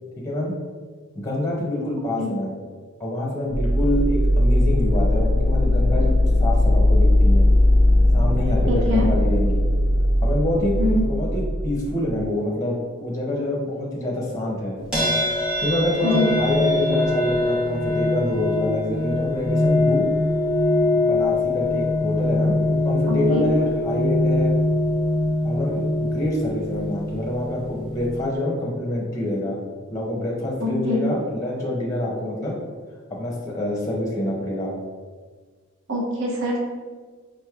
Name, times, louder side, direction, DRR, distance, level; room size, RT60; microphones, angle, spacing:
voice 1, 1.1-2.5 3.0-6.1 6.4-7.4 8.1-9.6 10.2-14.8 15.6-20.0 20.9-24.5 25.4-29.6 29.9-32.5 33.2-34.7, left 1 dB, 15° left, -2 dB, 0.7 m, -26 dB
sound 1, 3.5-12.2, left 1 dB, 55° left, 0.4 m, -19 dB
voice 2, 8.7-9.1 10.8-11.0 16.0-16.3 23.1-23.5 30.6-31.0 35.9-36.6, left 1 dB, 70° right, -3 dB, 0.9 m, -24 dB
sound 2, 14.9-28.4, left 2 dB, 5° right, 1.0 m, -23 dB
5.0 x 3.1 x 2.3 m, 1.5 s
head